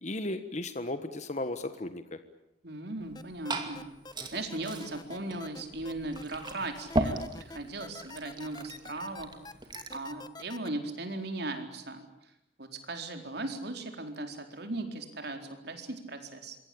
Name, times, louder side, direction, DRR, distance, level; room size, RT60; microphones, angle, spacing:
voice 1, 0.0-2.2, left 2 dB, 40° left, 9 dB, 1.4 m, -35 dB
voice 2, 2.6-3.8 4.3-9.3 9.9-12.0 12.6-16.6, right 2 dB, 60° right, 5 dB, 4.3 m, -38 dB
Liquid, 3.0-10.1, right 2 dB, 25° right, 2.7 m, -37 dB
sound 1, 3.1-10.7, left 3 dB, 20° left, 1.1 m, -46 dB
27.0 x 23.0 x 8.7 m, 0.81 s
head